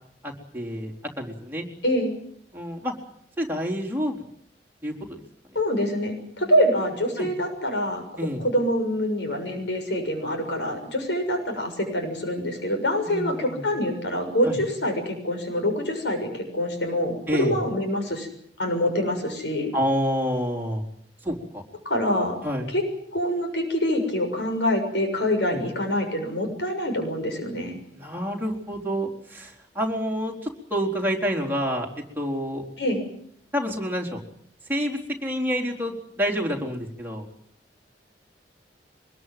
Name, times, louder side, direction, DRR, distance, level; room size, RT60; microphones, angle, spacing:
voice 1, 0.2-1.7 2.5-2.9 3.4-4.2 4.8-4.9 6.4-6.5 7.2-7.3 8.2-8.4 13.1-13.6 14.4-14.6 17.3-17.6 19.7-20.8 21.2-21.6 22.4-22.7 25.5-25.6 27.9-31.9 32.2-32.6 33.5-34.2 34.7-37.3, equal, 10° right, -1 dB, 4.1 m, -28 dB
voice 2, 5.5-8.0 8.4-18.3 18.6-19.7 21.8-22.4 22.7-22.8 23.1-27.8 32.8-33.0, equal, 80° left, 5 dB, 6.8 m, -25 dB
24.0 x 21.0 x 7.8 m, 0.68 s
head